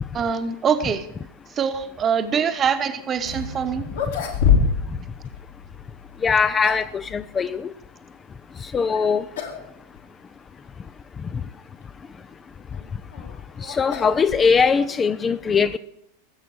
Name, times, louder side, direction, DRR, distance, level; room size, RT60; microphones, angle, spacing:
voice 1, 0.1-1.1 1.5-3.8, right 7 dB, 25° right, 1.1 m, -24 dB
sound 1, 3.2-7.8, equal, 80° left, 3.8 m, -42 dB
sound 2, 3.4-3.5 3.9-5.0 5.2-5.4 6.2-7.0 8.8-9.0 9.3-9.7 10.0-10.1 10.8-10.9 12.7-14.8, left 6 dB, 60° left, 2.3 m, -25 dB
voice 2, 6.2-7.7 8.6-9.3 11.3-11.4 13.6-15.8, left 5 dB, 20° left, 0.4 m, -21 dB
19.5 x 8.0 x 4.8 m
figure-of-eight pair, 90°, 0 cm